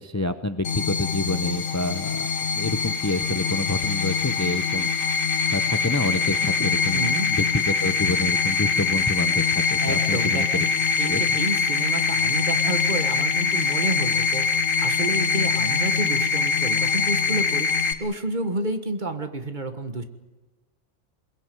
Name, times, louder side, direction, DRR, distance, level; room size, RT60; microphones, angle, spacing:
voice 1, 0.0-2.3 2.5-7.4 7.8-10.5 11.0-11.2, left 2 dB, 15° left, 10 dB, 0.7 m, -28 dB
sound 1, 0.6-17.9, left 5 dB, 85° left, 1.9 m, -23 dB
voice 2, 6.9-7.3 9.8-10.7 11.0-14.5 14.8-17.7 18.0-20.0, right 2 dB, 40° right, 7 dB, 1.6 m, -30 dB
22.5 x 21.5 x 9.4 m, 1.2 s
omnidirectional pair, 1.3 m